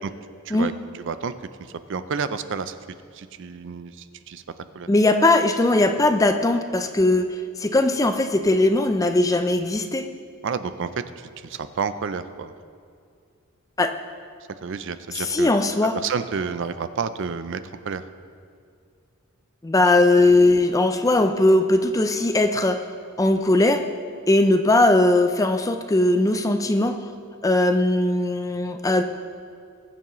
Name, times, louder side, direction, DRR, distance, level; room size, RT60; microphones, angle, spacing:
voice 1, 1.0-1.3 1.9-2.8 3.1-3.9 4.3-4.4 4.8-4.9 10.4-10.9 11.4-12.5 14.6-15.5 16.0-17.6 17.9-18.0, right 5 dB, 55° right, 12 dB, 0.4 m, -29 dB
voice 2, 4.9-7.2 7.6-10.1 13.8-13.9 15.1-16.0 19.6-22.8 23.2-23.8 24.3-27.0 27.4-29.0, left 2 dB, 15° left, 7 dB, 0.4 m, -19 dB
21.0 x 7.1 x 3.1 m, 2.3 s
head